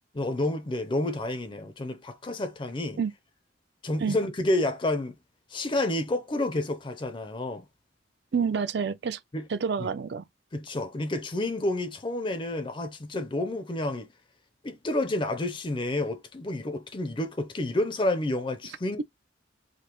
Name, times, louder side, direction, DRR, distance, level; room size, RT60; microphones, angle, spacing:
voice 1, 0.2-3.0 3.8-5.2 5.5-7.6 9.3-9.5 9.8-9.9 10.5-14.1 14.6-19.0, left 1 dB, 25° left, 0.5 m, -29 dB
voice 2, 8.3-9.2 9.5-10.2, right 6 dB, 60° right, 0.4 m, -28 dB
4.9 x 2.1 x 2.9 m
head